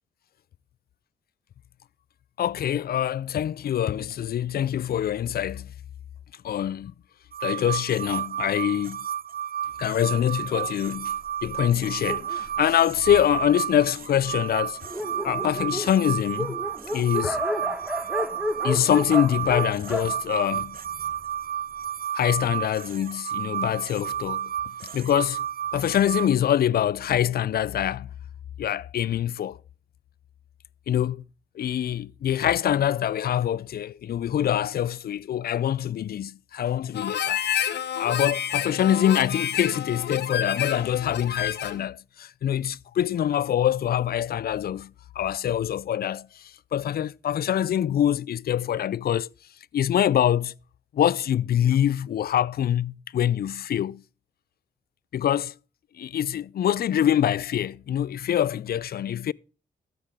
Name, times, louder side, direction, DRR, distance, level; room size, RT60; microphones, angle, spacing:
voice 1, 2.4-5.7 6.4-6.9 7.4-9.0 9.8-14.8 15.2-16.6 16.9-17.4 18.6-20.8 22.1-24.5 24.9-25.5 25.7-28.1 28.6-29.6 30.9-31.2 31.5-37.4 38.0-49.3 49.7-50.5 50.9-54.0 55.1-55.5 55.9-59.3, left 10 dB, 65° left, 0.4 m, -25 dB
sound 1, 7.3-26.3, right 9 dB, 60° right, 0.7 m, -32 dB
Dog, 10.5-13.5 14.2-14.3 14.5-14.6 14.8-21.2, left 1 dB, 5° right, 1.5 m, -33 dB
Harmonica, 36.9-41.9, left 9 dB, 85° left, 0.9 m, -29 dB
13.0 x 8.5 x 3.5 m
cardioid pair, 60°, 17 cm